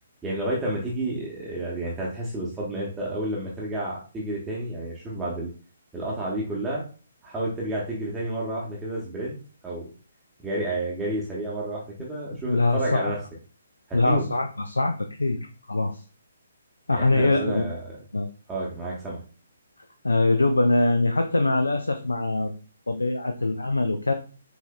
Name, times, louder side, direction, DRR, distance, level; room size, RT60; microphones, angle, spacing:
voice 1, 0.2-5.5 5.9-6.8 7.2-9.3 9.6-9.9 10.4-13.2 13.9-14.2 16.9-17.8 18.5-19.2, right 1 dB, 10° right, -6 dB, 0.8 m, -30 dB
voice 2, 12.5-13.1 13.9-15.4 15.7-16.0 16.9-17.7 18.1-18.3 20.0-22.5 22.9-24.1, left 2 dB, 75° left, 7 dB, 0.4 m, -23 dB
5.6 x 2.7 x 2.2 m, 0.38 s
figure-of-eight pair, 135°, 0 cm